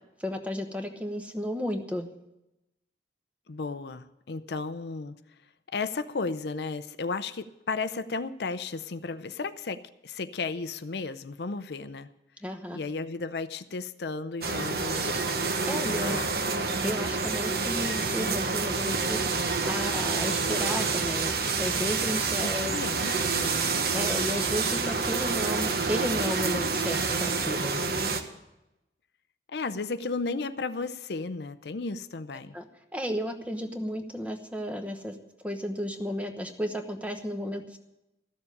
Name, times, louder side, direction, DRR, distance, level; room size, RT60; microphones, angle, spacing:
voice 1, 0.2-2.1 12.4-12.8 15.7-16.2 16.8-19.4 19.6-21.3 21.6-22.8 23.9-27.8 32.5-32.6 32.9-35.2 35.4-37.8, equal, 5° right, 6 dB, 1.0 m, -33 dB
voice 2, 3.5-5.2 5.7-12.1 12.7-15.2 16.0-16.3 22.4-23.7 29.5-32.6, left 4 dB, 70° left, 12 dB, 0.6 m, -34 dB
sound 1, 14.4-28.2, right 4 dB, 55° right, 1.1 m, -28 dB
14.0 x 7.1 x 9.9 m, 0.93 s
head